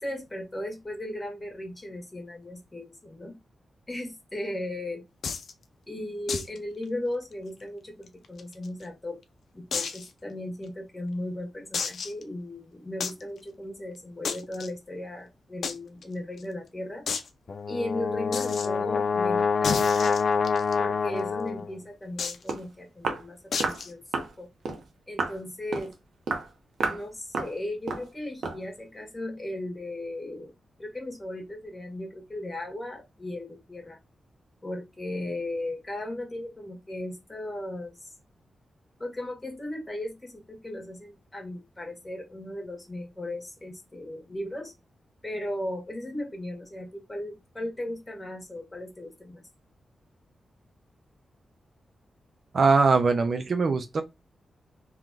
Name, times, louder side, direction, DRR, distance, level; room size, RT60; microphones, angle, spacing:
voice 1, 0.0-3.4 3.9-5.0 5.9-9.2 9.5-17.1 17.7-20.2 20.8-24.5 25.1-25.9 26.9-30.5 30.8-34.0 34.6-38.1 39.0-44.7 45.2-49.4, left 1 dB, 15° left, 1.8 m, -36 dB
sound 1, 5.2-5.5 6.3-6.6 6.8-6.9 7.3-7.4 8.1-8.8 9.7-10.1 10.6-10.7 11.7-12.2 13.0-13.2 14.2-14.7 15.6-15.7 16.0-16.1 16.4-16.5 17.1-17.3 18.3-18.7 19.6-20.7 22.2-22.5 23.5-23.9, left 5 dB, 70° left, 0.7 m, -31 dB
Brass instrument, 17.5-21.8, left 5 dB, 50° left, 0.4 m, -26 dB
Walk footsteps, 22.2-22.3 22.5-22.7 23.0-23.3 23.6-23.8 24.1-24.3 24.6-24.8 25.2-25.4 25.7-25.9 26.3-26.5 26.8-27.0 27.3-27.6 27.9-28.1 28.4-28.6, right 4 dB, 75° right, 1.1 m, -30 dB
voice 2, 52.5-54.0, right 4 dB, 50° right, 0.6 m, -22 dB
3.8 x 3.0 x 3.6 m
wide cardioid pair, 120°, 0 cm